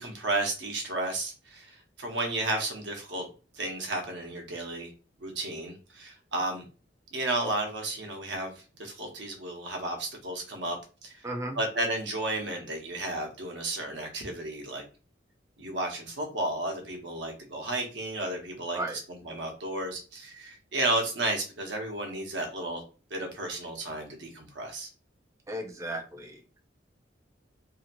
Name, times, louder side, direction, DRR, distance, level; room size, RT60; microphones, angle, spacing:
voice 1, 0.0-3.3 3.5-4.9 5.2-6.7 7.1-8.5 8.8-11.3 11.5-14.8 15.6-22.8 23.1-24.9, right 2 dB, 70° right, 2 dB, 0.9 m, -33 dB
voice 2, 11.2-11.6 18.7-19.0 25.5-26.6, right 1 dB, 15° right, 3 dB, 0.4 m, -35 dB
2.8 x 2.7 x 2.6 m, 0.34 s
head